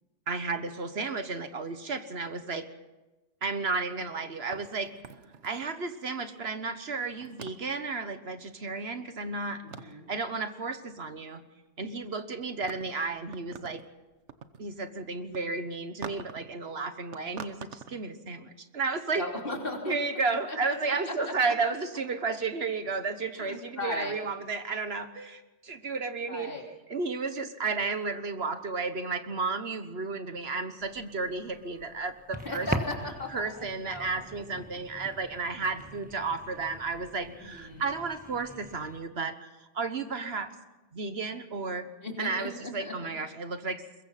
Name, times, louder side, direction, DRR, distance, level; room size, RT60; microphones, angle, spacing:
voice 1, 0.3-2.7 3.4-4.9 5.4-11.4 11.8-13.8 14.6-19.2 19.9-26.5 26.9-32.7 33.3-40.5 40.9-41.9 42.2-43.8, right 4 dB, 65° right, 9 dB, 1.5 m, -33 dB
sound 1, 4.5-6.0 7.1-7.8 9.2-9.3 9.7-10.1 11.9-12.1 12.5-13.9 14.1-14.6 15.2-15.4 16.0-16.6 17.1-18.1, right 6 dB, 80° right, 1.3 m, -44 dB
voice 2, 9.6-10.1 19.2-20.0 20.5-20.6 20.9-21.3 23.3-24.2 26.3-26.7 32.4-34.1 37.2-37.9 42.0-43.2, left 1 dB, 50° left, 1 dB, 3.6 m, -37 dB
sound 2, 30.8-39.0, right 1 dB, 10° right, 1.4 m, -41 dB
22.5 x 21.5 x 5.9 m, 1.1 s
omnidirectional pair, 1.2 m